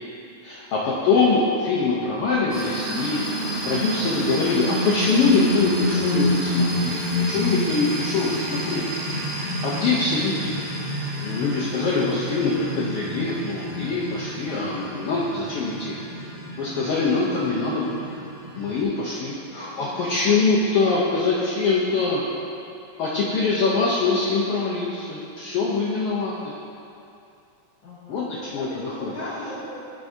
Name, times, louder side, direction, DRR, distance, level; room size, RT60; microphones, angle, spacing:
voice 1, 0.4-3.2 3.6-7.0 7.3-8.8 9.6-10.5 11.2-15.9 16.6-18.0 18.6-22.2 23.0-26.3 28.1-29.1, left 4 dB, 75° left, -6 dB, 1.3 m, -23 dB
sound 1, 2.5-18.8, equal, 50° right, 0.4 m, -28 dB
voice 2, 19.0-21.4 27.8-29.8, left 1 dB, 55° left, -10 dB, 1.3 m, -40 dB
14.0 x 4.7 x 2.7 m, 2.7 s
omnidirectional pair, 3.5 m